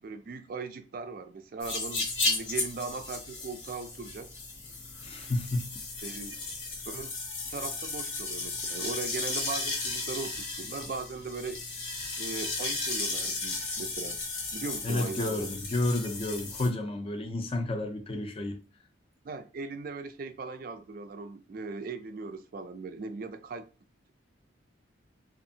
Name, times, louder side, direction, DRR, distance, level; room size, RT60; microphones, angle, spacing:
voice 1, 0.0-4.3 6.0-6.4 6.9-7.1 7.4-11.6 12.2-14.2 14.5-15.5 19.2-23.7, right 4 dB, 45° right, 0.3 m, -39 dB
sound 1, 1.6-16.7, left 3 dB, 75° left, 1.0 m, -35 dB
voice 2, 5.0-5.7 14.8-18.6, left 2 dB, 30° left, 0.4 m, -31 dB
2.6 x 2.4 x 2.6 m
head